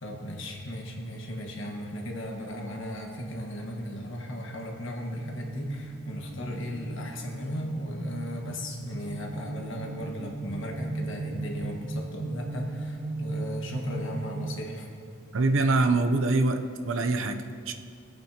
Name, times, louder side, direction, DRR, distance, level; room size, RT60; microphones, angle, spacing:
voice 1, 0.0-14.9, equal, 65° left, 0 dB, 1.5 m, -36 dB
sound 1, 5.2-14.6, right 2 dB, 85° right, 1.7 m, -37 dB
voice 2, 15.3-17.7, right 3 dB, 70° right, 7 dB, 0.6 m, -24 dB
19.5 x 8.8 x 2.9 m, 2.3 s
head